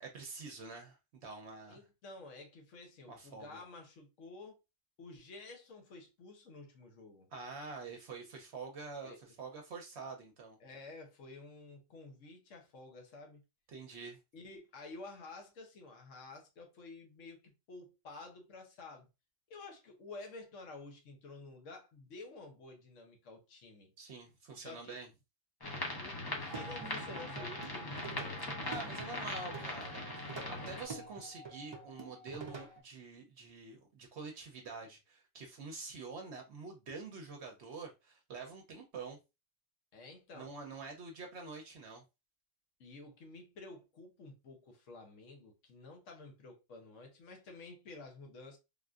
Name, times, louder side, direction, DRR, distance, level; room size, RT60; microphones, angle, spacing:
voice 1, 0.0-1.8 3.1-3.6 7.3-10.6 13.7-14.2 24.0-25.1 28.4-39.2 40.3-42.0, right 4 dB, 65° right, 0.9 m, -47 dB
voice 2, 1.7-4.6 5.0-7.3 9.0-9.2 10.6-13.4 14.3-19.1 19.5-23.9 24.6-25.0 26.0-28.2 30.6-30.9 39.9-40.5 42.8-48.6, left 3 dB, 75° left, 1.2 m, -51 dB
sound 1, 25.6-30.8, left 2 dB, 30° left, 0.5 m, -41 dB
Plucked string instrument, 26.4-32.8, right 4 dB, 45° right, 0.3 m, -47 dB
3.5 x 2.5 x 2.3 m
omnidirectional pair, 1.3 m